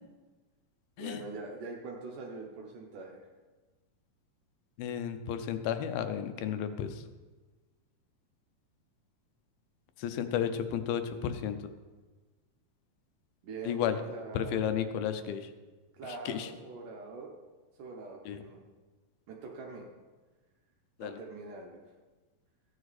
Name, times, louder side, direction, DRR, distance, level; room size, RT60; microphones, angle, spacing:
voice 1, 1.0-3.2 13.4-14.7 16.0-17.3 17.8-18.6 19.3-19.9 21.0-21.8, right 3 dB, 70° right, -1 dB, 2.5 m, -43 dB
voice 2, 4.8-7.0 10.0-11.6 13.6-14.0 14.3-15.5 16.1-16.5 18.3-18.4 21.0-21.2, left 9 dB, 90° left, 9 dB, 2.7 m, -33 dB
15.0 x 9.7 x 4.2 m, 1.3 s
omnidirectional pair, 4.2 m